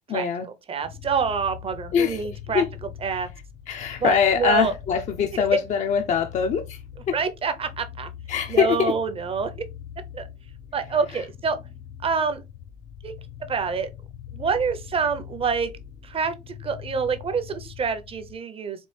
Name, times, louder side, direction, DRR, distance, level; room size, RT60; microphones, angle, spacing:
voice 1, 0.1-0.5 1.9-2.7 3.1-3.3 3.7-7.2 8.3-8.9 11.1-11.2, left 7 dB, 45° left, 0.5 m, -23 dB
voice 2, 0.7-2.6 3.0-3.3 4.0-4.7 5.3-5.4 7.1-8.1 8.5-9.5 10.1-10.3 10.7-11.6 12.0-12.4 13.0-13.1 13.5-13.9 14.3-15.7 16.0-18.9, right 5 dB, 35° right, 0.7 m, -26 dB
sound 1, 0.8-18.4, left 10 dB, 75° left, 1.1 m, -42 dB
4.4 x 2.4 x 3.2 m
cardioid pair, 110°, 17 cm